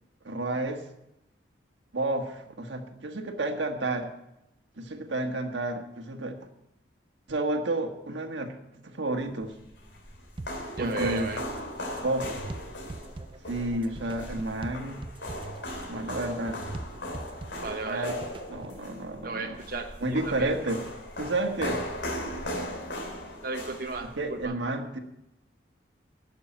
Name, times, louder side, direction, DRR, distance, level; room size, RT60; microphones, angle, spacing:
voice 1, 0.2-0.8 1.9-4.1 4.8-6.4 7.3-8.5 8.8-9.5 10.8-11.3 12.0-12.3 13.5-15.0 15.9-16.6 17.9-18.2 18.5-19.6 20.0-20.8 21.2-21.8 24.0-25.0, right 2 dB, 85° right, 4 dB, 1.5 m, -31 dB
sound 1, 9.4-24.4, left 1 dB, 75° left, 3.1 m, -38 dB
sound 2, 10.4-18.8, right 2 dB, 30° right, 0.4 m, -43 dB
voice 2, 10.8-11.4 17.6-18.1 19.2-20.6 23.4-24.6, right 3 dB, 50° right, 3 dB, 0.9 m, -34 dB
11.5 x 6.8 x 8.8 m, 0.85 s
head